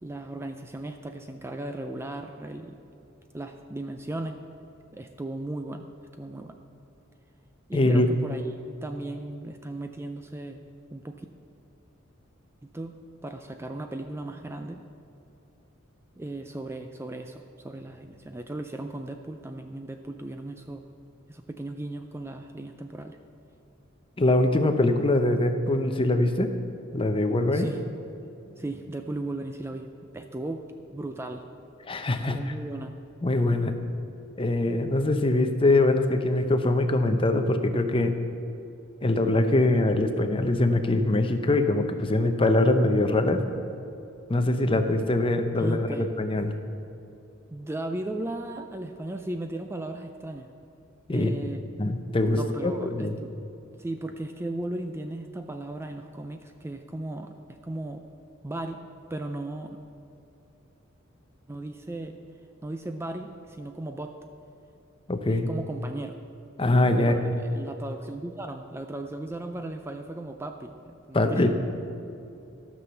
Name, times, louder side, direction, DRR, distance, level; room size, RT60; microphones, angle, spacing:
voice 1, 0.0-2.8 3.3-4.3 4.9-5.8 6.2-6.5 7.7-10.6 10.9-11.3 12.6-14.8 16.2-20.8 21.3-23.2 27.5-27.8 28.5-29.9 30.1-30.6 30.9-31.4 32.3-32.9 45.6-46.1 47.5-50.5 51.1-51.6 52.4-53.3 53.8-57.3 57.6-58.0 58.4-58.8 59.1-59.8 61.5-62.2 62.6-64.2 65.3-66.2 67.0-71.5, right 2 dB, 10° right, 6 dB, 0.4 m, -36 dB
voice 2, 7.7-8.1 24.2-26.5 26.9-27.7 31.9-32.4 33.2-33.8 34.4-38.2 39.0-43.4 44.3-46.5 51.1-51.3 51.8-53.1 65.1-65.5 66.6-67.4 71.1-71.5, left 2 dB, 25° left, 7 dB, 0.7 m, -23 dB
13.0 x 6.2 x 6.9 m, 2.8 s
head